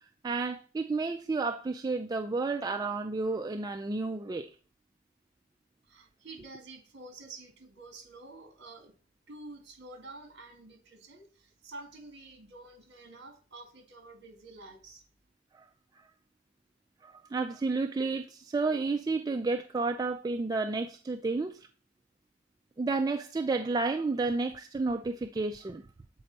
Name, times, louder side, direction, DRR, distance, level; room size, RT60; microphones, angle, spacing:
voice 1, 0.2-4.5 15.5-15.7 17.0-21.6 22.8-25.8, right 3 dB, 20° right, 6 dB, 0.3 m, -31 dB
voice 2, 5.9-8.9 9.3-15.0, right 2 dB, 60° right, 4 dB, 1.9 m, -49 dB
7.7 x 4.3 x 4.0 m, 0.39 s
head